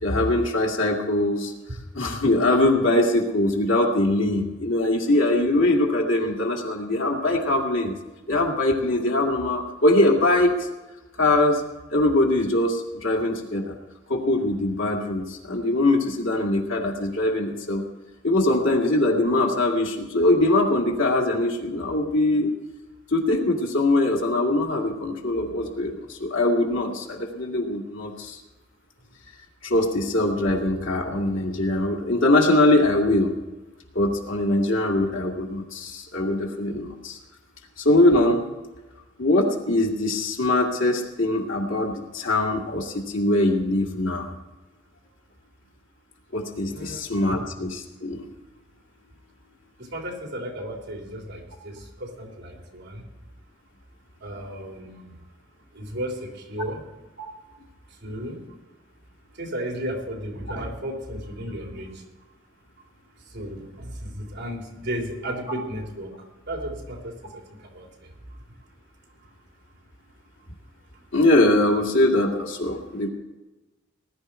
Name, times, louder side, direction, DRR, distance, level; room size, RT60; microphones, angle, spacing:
voice 1, 0.0-1.5 1.9-7.9 8.3-10.5 11.2-11.6 11.9-13.7 14.1-17.8 18.2-22.5 23.1-28.4 29.6-33.3 33.9-37.2 37.8-38.4 39.2-44.3 46.3-48.3 71.1-73.1, left 1 dB, 75° left, 0 dB, 2.3 m, -22 dB
voice 2, 46.7-47.2 49.9-53.0 54.2-55.1 55.7-56.8 58.0-58.4 59.4-61.9 63.3-66.1 66.5-67.1 67.7-67.9, equal, 60° right, 0 dB, 3.4 m, -34 dB
19.5 x 11.0 x 4.4 m, 1.1 s
head